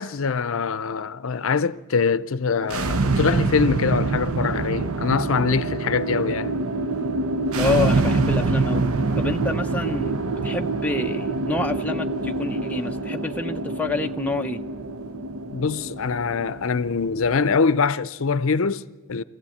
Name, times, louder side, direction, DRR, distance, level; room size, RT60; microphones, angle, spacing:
voice 1, 0.0-6.6 15.5-19.2, left 5 dB, 70° left, 0.6 m, -23 dB
sound 1, 2.6-17.6, right 3 dB, 85° right, 0.8 m, -25 dB
voice 2, 7.6-8.9 9.2-10.2 10.4-14.6, left 3 dB, 5° left, 0.6 m, -27 dB
23.5 x 15.5 x 8.6 m
head